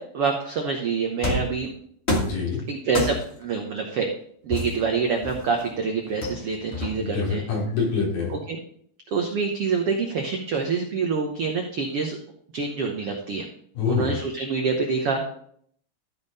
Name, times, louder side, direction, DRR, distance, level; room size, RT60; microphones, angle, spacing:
voice 1, 0.0-1.7 2.7-4.1 4.4-7.4 8.3-8.6 9.1-12.2 12.5-13.5 13.9-15.3, right 5 dB, 85° right, 2 dB, 1.3 m, -26 dB
sound 1, 1.2-1.6 2.1-2.4 2.9-3.4 4.5-5.6 6.2-7.2, left 1 dB, 40° left, 0.9 m, -28 dB
voice 2, 2.2-2.6 7.0-8.3 13.7-14.1, left 5 dB, 85° left, -3 dB, 5.1 m, -25 dB
14.0 x 5.4 x 4.1 m, 0.63 s
omnidirectional pair, 4.2 m